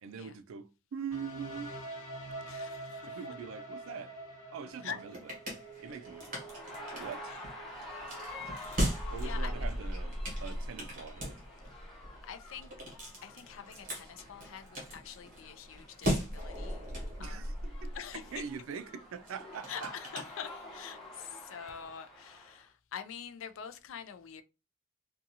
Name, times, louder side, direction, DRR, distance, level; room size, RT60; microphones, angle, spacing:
voice 1, 0.0-1.7 3.1-4.1 4.5-5.2 5.8-6.4 6.9-7.3 9.1-11.4 17.2-18.0 18.3-19.9, right 6 dB, 80° right, 0.4 m, -43 dB
sound 1, 1.1-8.8, right 2 dB, 90° left, 0.8 m, -46 dB
voice 2, 2.4-3.2 4.8-5.0 7.3-7.4 7.7-7.8 8.5-9.7 12.3-12.7 13.2-16.9 17.2-17.5 17.9-18.4 19.7-24.4, left 8 dB, 70° left, 0.4 m, -45 dB
sound 2, 4.7-21.0, equal, 45° right, 1.2 m, -39 dB
sound 3, 6.1-22.6, left 1 dB, ahead, 1.0 m, -49 dB
2.6 x 2.3 x 2.7 m
head